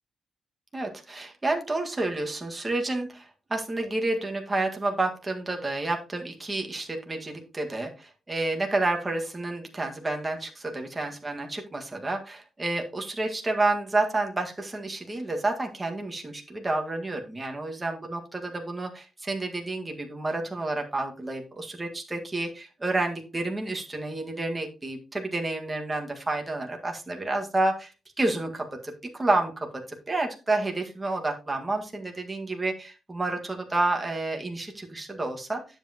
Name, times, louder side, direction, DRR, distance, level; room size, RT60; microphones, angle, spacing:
voice 1, 0.7-27.9 28.2-35.6, right 2 dB, 20° right, 2 dB, 1.7 m, -30 dB
10.0 x 7.6 x 2.9 m, 0.32 s
wide cardioid pair, 130°, 0 cm